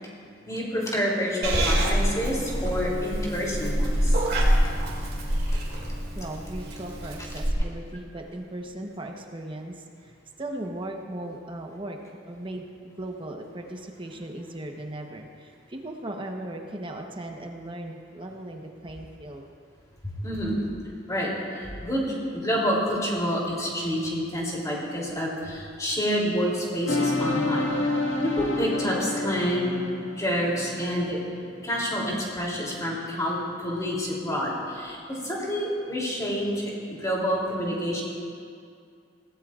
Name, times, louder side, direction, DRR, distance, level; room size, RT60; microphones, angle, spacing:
voice 1, 0.4-4.2 20.0-20.6 21.1-27.7 28.2-29.7 30.1-31.2 31.6-36.7 37.0-38.0, equal, 20° left, -4 dB, 3.1 m, -28 dB
Purr / Meow, 1.4-7.5, equal, 55° right, 2.3 m, -26 dB
voice 2, 6.1-12.0 12.3-19.4, right 1 dB, 25° right, 2 dB, 1.0 m, -37 dB
sound 1, 26.9-31.8, left 2 dB, 80° left, 1.8 m, -29 dB
21.5 x 17.0 x 2.5 m, 2.3 s
head